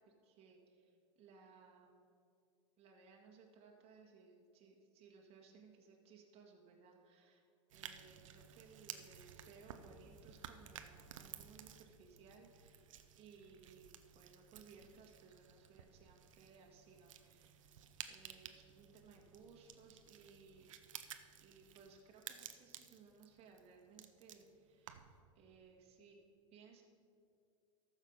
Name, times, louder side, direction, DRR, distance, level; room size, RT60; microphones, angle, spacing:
voice 1, 0.1-2.1 2.8-7.4 7.7-12.9 13.2-17.8 18.1-20.7 21.4-25.0 25.4-26.2 26.5-26.8, right 5 dB, 35° right, 0 dB, 1.7 m, -62 dB
sound 1, 7.7-25.2, right 9 dB, 75° right, 0.7 m, -55 dB
14.0 x 6.5 x 5.3 m, 2.5 s
hypercardioid pair, 95°, 17 cm